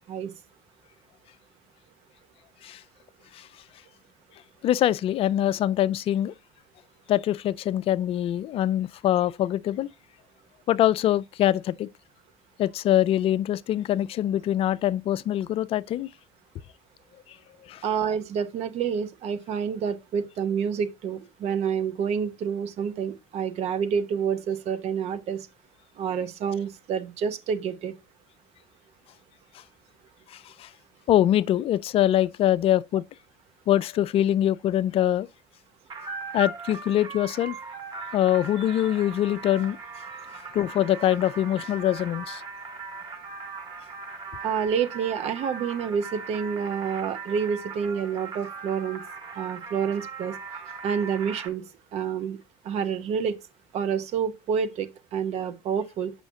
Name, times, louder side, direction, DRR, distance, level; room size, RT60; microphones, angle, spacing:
voice 1, 4.6-6.3 7.1-9.9 10.7-11.9 12.6-16.1 17.7-17.8 30.3-30.7 31.1-33.0 33.7-35.3 36.3-37.6 38.1-39.8 40.5-42.4, left 12 dB, 50° left, 0.3 m, -24 dB
voice 2, 17.8-25.5 26.0-28.0 44.4-49.0 49.4-50.4 50.8-52.4 52.6-53.4 53.7-56.1, right 7 dB, 60° right, 0.8 m, -28 dB
sound 1, 35.9-51.5, right 4 dB, 40° right, 1.7 m, -39 dB
7.0 x 5.7 x 2.7 m
hypercardioid pair, 60°, 13 cm